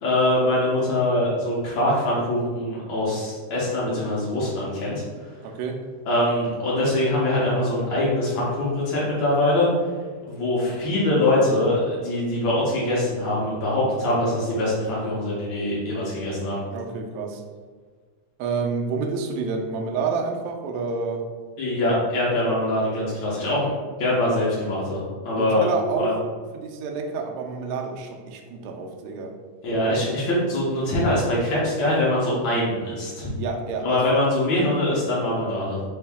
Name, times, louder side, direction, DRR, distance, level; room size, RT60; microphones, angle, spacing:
voice 1, 0.0-5.3 6.1-9.7 10.3-16.6 21.6-23.7 24.0-25.7 26.0-26.1 29.6-33.3 33.8-35.8, left 1 dB, 80° left, -7 dB, 1.1 m, -23 dB
voice 2, 5.4-5.8 16.7-17.4 18.4-21.2 25.4-26.1 26.5-29.3 33.3-34.2, right 4 dB, 80° right, 3 dB, 1.7 m, -29 dB
4.4 x 2.7 x 3.4 m, 1.5 s
omnidirectional pair, 3.4 m